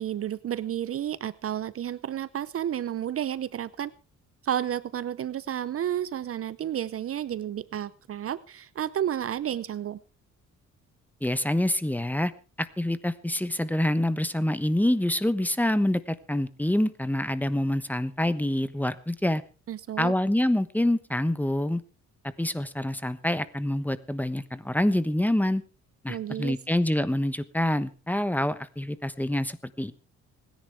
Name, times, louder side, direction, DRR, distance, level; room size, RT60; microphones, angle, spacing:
voice 1, 0.0-3.9 4.4-10.0 19.7-20.1 26.1-26.6, right 10 dB, 50° right, 18 dB, 0.6 m, -31 dB
voice 2, 11.2-12.3 12.6-19.4 20.0-21.8 22.4-25.6 26.0-29.9, left 1 dB, 5° left, 14 dB, 1.1 m, -26 dB
26.0 x 10.5 x 3.5 m, 0.33 s
cardioid pair, 90°, 30 cm